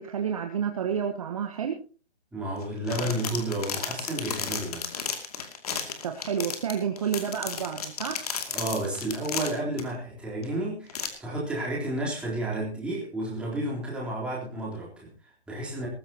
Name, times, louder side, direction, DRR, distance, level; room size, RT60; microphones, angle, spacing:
voice 1, 0.0-1.8 6.0-8.2, right 7 dB, 30° right, 5 dB, 1.3 m, -30 dB
voice 2, 2.3-4.9 8.5-15.9, right 1 dB, 5° right, -5 dB, 3.7 m, -31 dB
sound 1, 2.6-9.8 10.4-10.5 10.9-11.1, left 6 dB, 35° left, 2.5 m, -34 dB
20.0 x 15.0 x 2.9 m, 0.36 s
figure-of-eight pair, 155°, 33 cm